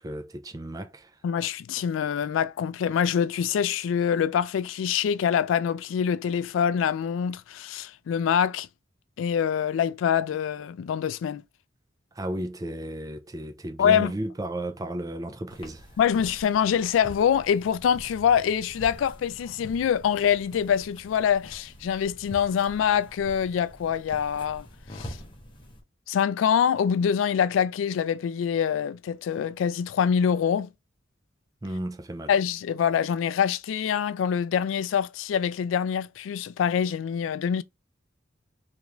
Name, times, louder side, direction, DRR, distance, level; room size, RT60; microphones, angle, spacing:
voice 1, 0.0-1.1 12.2-15.9 31.6-32.3, right 1 dB, 20° right, 0.4 m, -34 dB
voice 2, 1.2-8.7 9.2-11.4 13.8-14.1 16.0-24.7 24.9-25.2 26.1-30.7 32.3-37.6, left 8 dB, 85° left, 0.3 m, -25 dB
sound 1, 15.5-25.8, equal, 25° left, 0.8 m, -45 dB
3.0 x 2.5 x 3.3 m
head